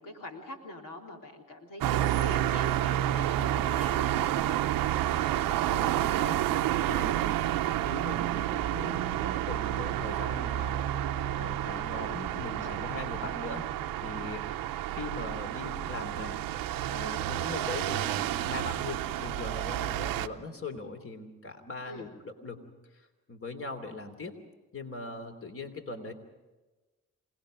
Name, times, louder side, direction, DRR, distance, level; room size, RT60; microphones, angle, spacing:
voice 1, 0.0-4.6 11.7-11.8 12.7-13.0 21.9-22.1, left 1 dB, 75° left, 0 dB, 3.5 m, -44 dB
sound 1, 1.8-20.3, right 13 dB, 90° right, 0.8 m, -30 dB
voice 2, 5.7-13.7 14.0-16.4 16.9-22.6 22.9-24.4 24.7-26.1, left 3 dB, 40° left, 6 dB, 3.1 m, -41 dB
28.0 x 19.0 x 5.2 m, 1.1 s
supercardioid pair, 45°, 33 cm